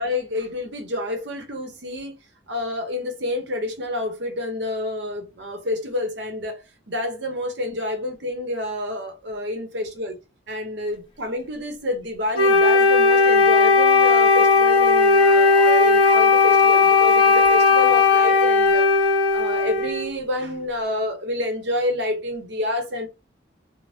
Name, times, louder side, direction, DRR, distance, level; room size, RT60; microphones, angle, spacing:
voice 1, 0.0-2.1 2.5-6.6 6.9-10.1 10.5-18.9 19.3-23.1, left 1 dB, 70° right, 0.8 m, -28 dB
Wind instrument woodwind instrument, 12.4-20.1, left 4 dB, 30° left, 0.7 m, -16 dB
2.7 x 2.0 x 3.2 m
head